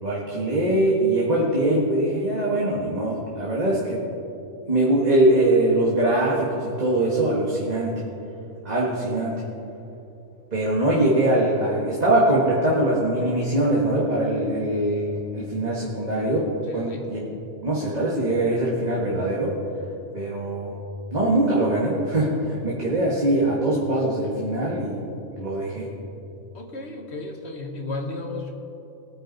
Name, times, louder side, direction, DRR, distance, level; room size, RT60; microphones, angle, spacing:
voice 1, 0.0-4.0 4.7-8.0 8.6-9.4 10.5-17.2 17.6-19.5 20.1-20.7 21.1-25.0 25.3-25.9, right 1 dB, 30° right, -5 dB, 1.6 m, -22 dB
voice 2, 16.7-17.1 26.5-28.5, left 2 dB, 50° left, 3 dB, 1.5 m, -33 dB
20.0 x 9.0 x 4.0 m, 2.9 s
omnidirectional pair, 1.4 m